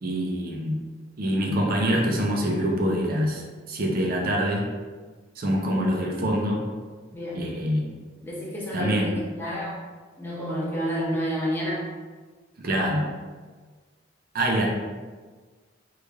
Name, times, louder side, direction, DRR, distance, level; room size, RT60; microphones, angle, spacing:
voice 1, 0.0-0.8 1.2-3.4 3.7-4.7 5.4-6.6 7.3-7.9 8.7-9.2 12.6-13.0 14.3-14.7, equal, 50° right, 0 dB, 0.6 m, -25 dB
voice 2, 7.1-7.4 8.2-9.8 10.2-11.8, equal, 10° left, -6 dB, 0.8 m, -30 dB
3.1 x 2.4 x 3.5 m, 1.4 s
head